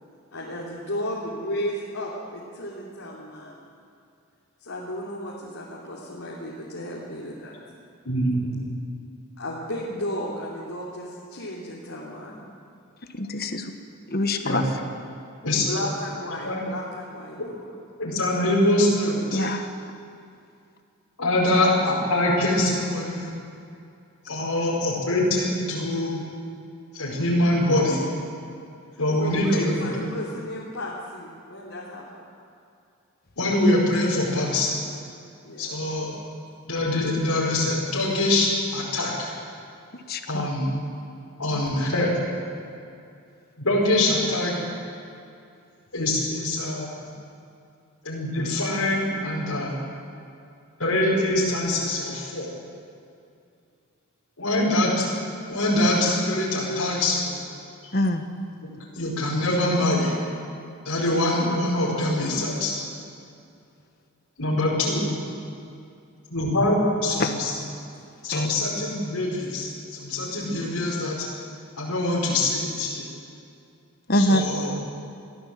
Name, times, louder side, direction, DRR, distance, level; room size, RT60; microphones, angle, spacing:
voice 1, 0.3-3.7 4.6-7.6 9.4-12.5 15.6-17.7 29.1-32.3 35.4-35.8, left 1 dB, 70° left, -6 dB, 3.1 m, -34 dB
voice 2, 8.1-8.7 14.4-14.7 15.4-15.7 16.4-16.6 18.0-19.4 21.2-23.3 24.2-26.2 26.9-28.0 29.0-30.1 33.4-34.8 35.6-36.1 36.7-39.3 40.3-40.7 41.4-42.1 43.6-44.6 45.9-46.9 48.0-49.7 50.8-52.5 54.4-55.0 55.5-57.4 58.9-60.1 60.9-62.7 64.4-65.2 66.3-67.5 68.2-71.2 71.8-73.1 74.1-74.7, left 1 dB, 90° left, -4 dB, 5.2 m, -24 dB
voice 3, 13.1-13.7 14.1-14.6 19.3-19.7 40.1-40.5 57.9-58.2 67.2-67.3 68.3-68.5 74.1-74.8, left 1 dB, 45° left, 6 dB, 1.3 m, -24 dB
22.5 x 15.0 x 7.7 m, 2.5 s
head